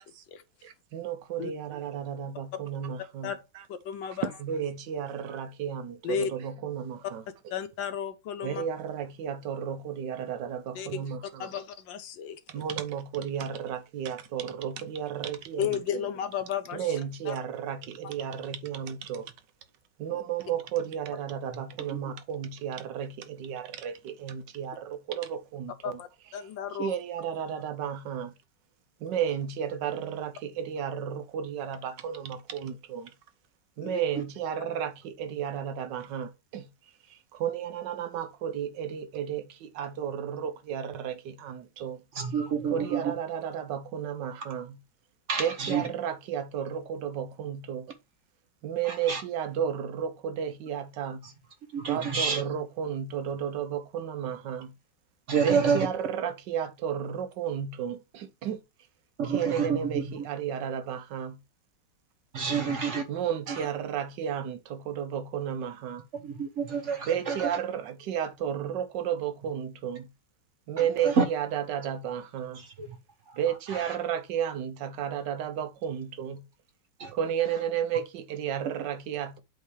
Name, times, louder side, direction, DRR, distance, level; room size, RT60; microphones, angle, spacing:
voice 1, 0.6-3.6 4.1-7.2 8.4-11.5 12.5-16.1 16.7-19.3 20.0-26.0 26.8-28.3 29.0-33.1 33.8-36.7 37.1-42.0 42.7-44.8 45.4-47.9 48.6-51.2 51.9-54.7 55.4-58.6 59.3-61.4 63.1-66.0 67.0-70.1 70.7-72.6 73.4-76.4 77.1-79.4, right 8 dB, 75° right, 1.4 m, -33 dB
voice 2, 3.7-4.3 6.0-6.3 7.5-8.6 10.7-11.1 11.4-12.4 15.6-16.9 17.3-17.4 25.8-26.9 33.8-34.0, left 8 dB, 85° left, 1.6 m, -33 dB
voice 3, 42.1-43.1 45.3-45.9 48.8-49.2 51.7-52.4 55.3-55.9 59.2-60.2 62.3-63.0 63.5-63.7 66.1-67.5 70.8-71.2 72.5-73.0 73.3-73.4 73.7-74.0 77.0-77.1, right 6 dB, 50° right, 1.0 m, -29 dB
8.2 x 3.2 x 4.7 m
omnidirectional pair, 2.0 m